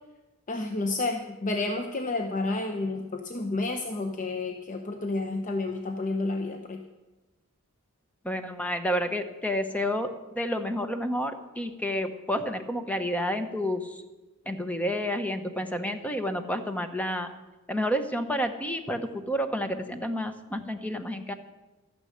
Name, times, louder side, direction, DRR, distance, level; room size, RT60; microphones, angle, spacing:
voice 1, 0.5-6.8, left 2 dB, 35° left, 5 dB, 0.7 m, -30 dB
voice 2, 8.2-10.1 10.3-14.0 14.5-17.3 17.7-21.3, equal, 5° left, 8 dB, 0.9 m, -30 dB
13.0 x 9.9 x 6.5 m, 1.1 s
head